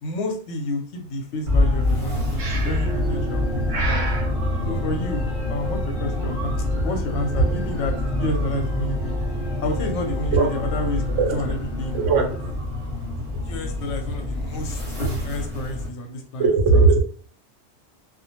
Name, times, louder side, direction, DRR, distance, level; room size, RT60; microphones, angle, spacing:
voice 1, 0.0-4.0 4.7-9.1 9.6-11.0 11.3-12.3 13.4-16.4 16.7-16.8, left 1 dB, 80° left, 4 dB, 0.9 m, -30 dB
sound 1, 1.5-15.9, left 1 dB, 30° right, 1.0 m, -26 dB
Breathing, 2.4-3.0 3.7-4.3, right 3 dB, 55° right, 0.6 m, -29 dB
sound 2, 2.8-12.5, equal, 50° left, 0.7 m, -36 dB
voice 2, 11.9-12.2 16.4-17.0, right 4 dB, 85° right, 2 dB, 1.0 m, -17 dB
2.4 x 2.1 x 2.8 m, 0.43 s
omnidirectional pair, 1.2 m